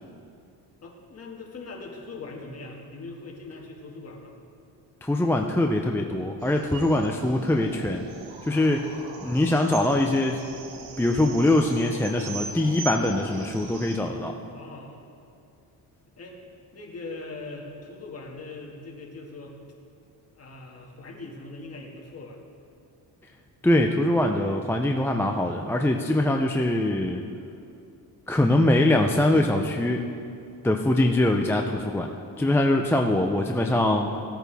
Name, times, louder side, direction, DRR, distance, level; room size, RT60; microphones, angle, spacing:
voice 1, 0.8-4.4 8.5-8.7 14.5-15.0 16.2-16.4 16.7-19.6 20.3-22.4, left 3 dB, 35° left, -2 dB, 1.9 m, -41 dB
voice 2, 5.0-8.1 8.5-8.8 9.2-10.4 11.0-14.4 23.6-27.2 28.3-30.1 30.6-32.1 32.4-34.1, left 1 dB, 5° left, 2 dB, 0.4 m, -23 dB
sound 1, 6.4-14.0, right 4 dB, 85° right, 1.3 m, -40 dB
17.0 x 8.9 x 3.4 m, 2.5 s
cardioid pair, 120°, 43 cm